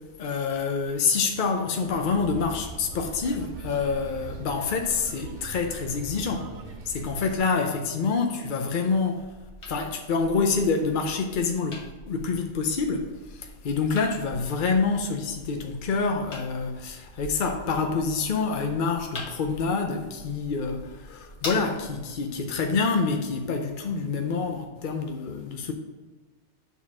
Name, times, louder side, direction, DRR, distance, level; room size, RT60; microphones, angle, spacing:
voice 1, 0.2-6.5 6.9-9.3 9.7-25.7, left 4 dB, 50° left, 0.7 m, -27 dB
sound 1, 1.9-7.4, right 4 dB, 85° right, 1.1 m, -41 dB
sound 2, 9.2-22.2, left 1 dB, 85° left, 1.5 m, -44 dB
7.3 x 4.1 x 6.0 m
omnidirectional pair, 1.2 m